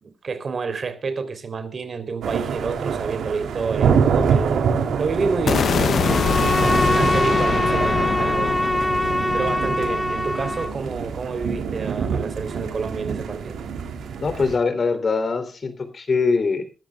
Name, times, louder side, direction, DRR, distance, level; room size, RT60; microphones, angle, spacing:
voice 1, 0.0-4.7 5.0-8.6 9.3-13.6, right 4 dB, 45° right, 3.5 m, -29 dB
sound 1, 2.2-14.6, right 6 dB, 85° right, 3.2 m, -26 dB
sound 2, 5.5-11.5, left 7 dB, 60° left, 0.6 m, -24 dB
Bowed string instrument, 6.0-10.8, equal, 5° left, 1.0 m, -23 dB
voice 2, 14.2-16.7, left 4 dB, 45° left, 3.4 m, -22 dB
22.0 x 14.0 x 2.4 m
cardioid pair, 100°, 0 cm